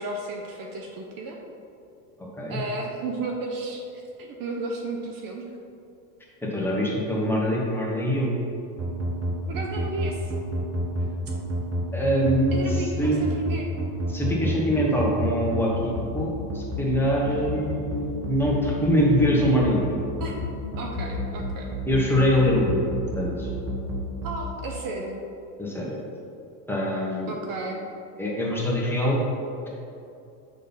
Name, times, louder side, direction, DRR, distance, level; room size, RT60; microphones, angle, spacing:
voice 1, 0.0-1.4 2.5-3.8 4.2-5.5 9.5-10.3 12.5-13.7 20.2-20.3 20.8-21.7 24.2-25.3 27.3-27.8, right 2 dB, 45° right, 1 dB, 0.8 m, -33 dB
voice 2, 6.4-8.3 11.9-13.2 14.1-20.0 21.9-23.5 25.6-26.0 26.7-27.4 28.2-29.2, equal, 5° left, -5 dB, 1.2 m, -24 dB
sound 1, 8.8-24.3, equal, 30° right, 1.2 m, -29 dB
6.5 x 5.5 x 4.0 m, 2.6 s
supercardioid pair, 120°, 48 cm